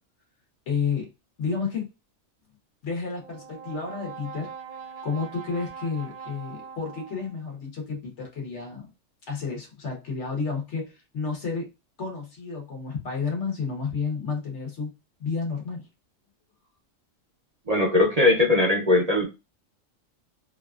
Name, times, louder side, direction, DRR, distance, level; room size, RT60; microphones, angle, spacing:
voice 1, 0.7-1.1 1.4-1.9 2.8-4.5 5.0-8.9 9.3-11.7 12.0-14.9 15.2-15.9, left 5 dB, 65° left, 0 dB, 1.3 m, -31 dB
Brass instrument, 3.1-7.5, right 6 dB, 75° right, 1.0 m, -42 dB
voice 2, 17.7-19.3, left 2 dB, 45° right, -3 dB, 0.5 m, -20 dB
2.9 x 2.4 x 2.3 m, 0.25 s
omnidirectional pair, 1.3 m